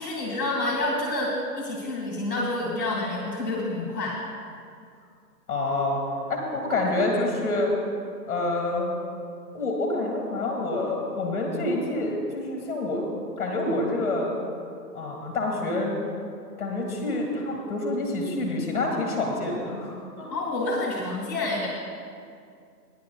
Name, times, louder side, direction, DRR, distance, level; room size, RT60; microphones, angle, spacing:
voice 1, 0.0-4.2 20.3-21.7, left 2 dB, 5° left, -11 dB, 1.0 m, -28 dB
voice 2, 5.5-6.0 6.3-7.7 8.3-8.9 9.5-13.1 13.4-14.3 14.9-16.0 16.6-20.3, left 2 dB, 25° left, -1 dB, 1.6 m, -27 dB
21.0 x 10.0 x 2.3 m, 2.3 s
hypercardioid pair, 160°, 49 cm